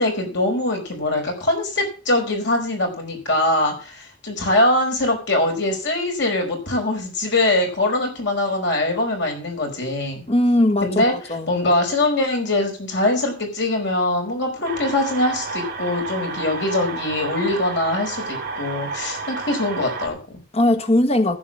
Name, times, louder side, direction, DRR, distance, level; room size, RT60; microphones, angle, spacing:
voice 1, 0.0-10.2 10.8-11.1 11.5-20.4, left 2 dB, 65° left, 5.1 m, -22 dB
voice 2, 10.3-11.5 20.5-21.4, left 1 dB, 35° left, 1.5 m, -19 dB
sound 1, 14.6-20.1, right 4 dB, 50° right, 2.6 m, -31 dB
15.0 x 5.3 x 7.4 m
head